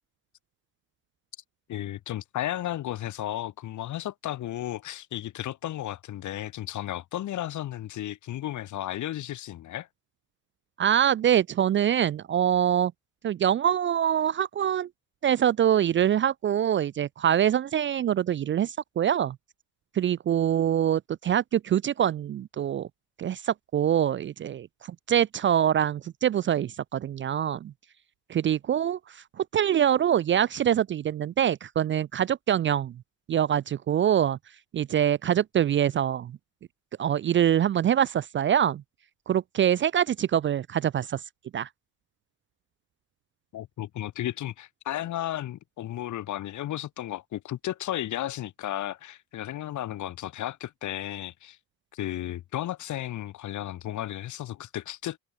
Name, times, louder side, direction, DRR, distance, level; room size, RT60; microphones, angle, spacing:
voice 1, 1.7-9.9 43.5-51.6 51.9-55.2, left 13 dB, 50° left, 5.2 m, -34 dB
voice 2, 10.8-12.9 13.2-14.9 15.2-19.4 19.9-22.9 23.2-27.7 28.3-32.9 33.3-34.4 34.7-36.3 37.0-38.8 39.3-41.2 41.5-41.7, right 10 dB, 30° right, 0.6 m, -24 dB
open air
cardioid pair, 165°, 37 cm